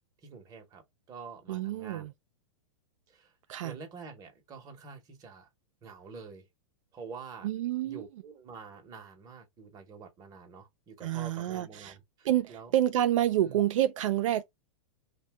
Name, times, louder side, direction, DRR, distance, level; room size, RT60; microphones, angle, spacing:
voice 1, 0.2-0.8 1.1-2.1 3.1-3.3 3.6-5.5 5.8-6.4 6.9-7.5 7.8-12.7 13.5-13.6, right 5 dB, 20° right, 0.8 m, -47 dB
voice 2, 1.5-2.1 3.5-3.8 7.4-8.0 11.0-11.9 12.2-14.4, right 12 dB, 75° right, 0.4 m, -28 dB
2.6 x 2.2 x 3.3 m
hypercardioid pair, 145°, 17 cm